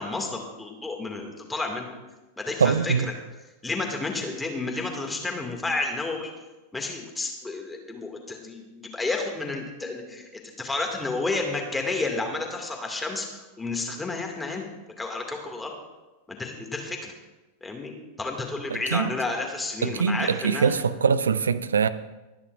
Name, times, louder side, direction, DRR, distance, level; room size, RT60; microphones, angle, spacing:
voice 1, 0.0-2.0 2.4-3.1 3.6-6.3 6.7-14.6 15.0-15.8 16.3-17.1 17.6-17.9 18.2-20.8, left 3 dB, 10° left, 2 dB, 2.0 m, -31 dB
voice 2, 2.6-3.1 18.7-19.1 19.8-21.9, right 6 dB, 70° right, 15 dB, 0.5 m, -23 dB
23.0 x 9.8 x 2.5 m, 1.1 s
figure-of-eight pair, 90°, 0 cm